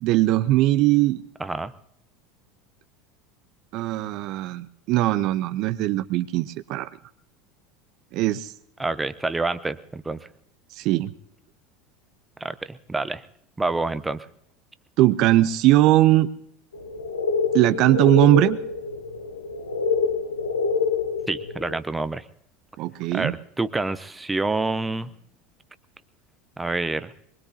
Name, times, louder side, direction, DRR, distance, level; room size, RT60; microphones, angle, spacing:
voice 1, 0.0-1.2 3.7-6.9 8.1-8.5 10.8-11.1 15.0-16.3 17.5-18.6 22.8-23.3, right 15 dB, 50° right, 13 dB, 0.5 m, -20 dB
voice 2, 1.4-1.7 8.8-10.3 12.4-13.2 13.6-14.3 21.3-22.2 23.1-25.1 26.6-27.1, right 3 dB, 10° right, 14 dB, 0.8 m, -27 dB
sound 1, 16.7-21.8, left 5 dB, 75° left, 0.9 m, -26 dB
22.5 x 21.5 x 2.8 m, 0.74 s
figure-of-eight pair, 75°, 0 cm